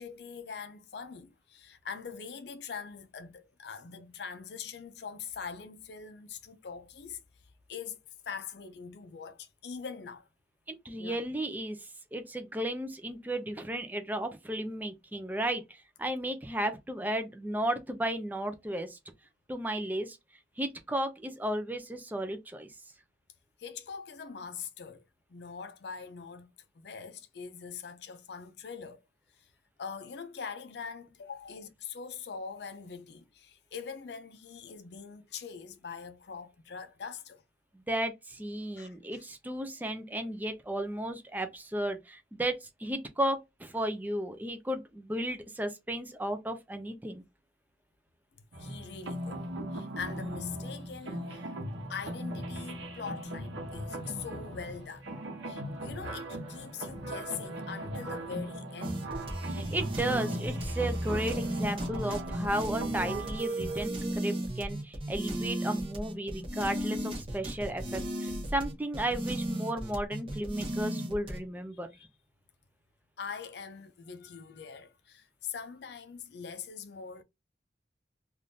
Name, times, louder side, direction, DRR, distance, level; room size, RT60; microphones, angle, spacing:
voice 1, 0.0-7.2 7.7-8.0 8.3-10.3 11.0-11.2 23.6-25.0 25.3-26.5 26.7-29.0 29.4-29.5 29.8-37.4 38.8-39.2 48.3-49.4 49.7-51.6 51.9-55.1 55.4-59.1 71.9-72.1 73.2-77.2, left 6 dB, 65° left, 0.5 m, -43 dB
voice 2, 10.7-19.0 19.5-20.2 20.6-22.7 37.9-47.2 59.5-71.9, right 1 dB, 10° right, 0.4 m, -34 dB
sound 1, 48.5-63.9, right 1 dB, 80° right, 0.9 m, -39 dB
sound 2, 58.8-71.4, right 1 dB, 30° right, 0.9 m, -35 dB
3.4 x 2.5 x 2.6 m
head